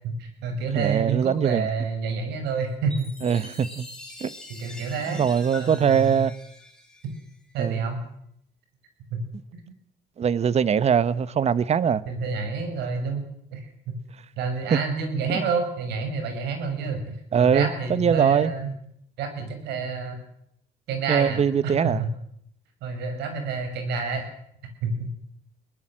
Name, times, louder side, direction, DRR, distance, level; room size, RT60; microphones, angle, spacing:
voice 1, 0.0-3.5 4.6-5.3 5.6-6.2 7.5-8.0 9.1-9.2 9.5-9.6 12.1-14.0 14.4-18.7 19.2-20.2 20.9-22.1 22.8-24.2 24.8-25.1, right 4 dB, 85° right, 6.6 m, -29 dB
voice 2, 0.7-1.7 3.2-3.9 4.2-4.3 5.1-6.4 7.6-7.8 10.2-12.0 14.7-14.8 15.3-15.4 17.3-18.5 21.1-22.0, right 7 dB, 40° right, 1.1 m, -22 dB
Chime, 2.9-7.6, left 1 dB, 5° left, 5.6 m, -44 dB
22.5 x 19.0 x 7.6 m
cardioid pair, 110°, 17 cm